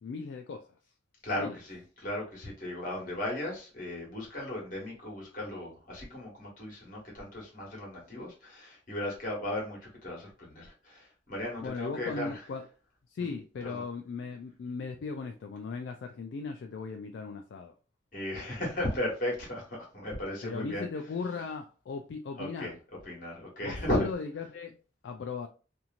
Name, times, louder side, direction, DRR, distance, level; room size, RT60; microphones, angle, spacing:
voice 1, 0.0-0.8 1.4-1.6 11.6-12.6 13.1-17.7 20.4-22.8 23.6-24.8 25.0-25.5, left 4 dB, 70° left, 0.3 m, -38 dB
voice 2, 1.2-12.4 13.6-13.8 18.1-20.9 22.4-22.7 23.0-24.1, left 1 dB, 45° left, 1.3 m, -36 dB
2.9 x 2.6 x 2.4 m
head